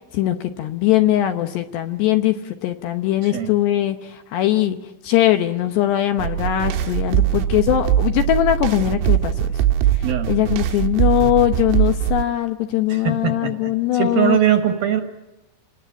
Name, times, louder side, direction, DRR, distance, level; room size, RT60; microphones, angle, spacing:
voice 1, 0.1-4.8 5.0-9.3 9.9-14.4, left 13 dB, 75° left, 7 dB, 2.7 m, -20 dB
sound 1, 6.2-12.2, right 11 dB, 85° right, 3.6 m, -21 dB
voice 2, 10.0-10.3 12.9-15.0, right 9 dB, 65° right, 7 dB, 2.6 m, -21 dB
28.0 x 19.5 x 8.9 m, 1.0 s
omnidirectional pair, 5.8 m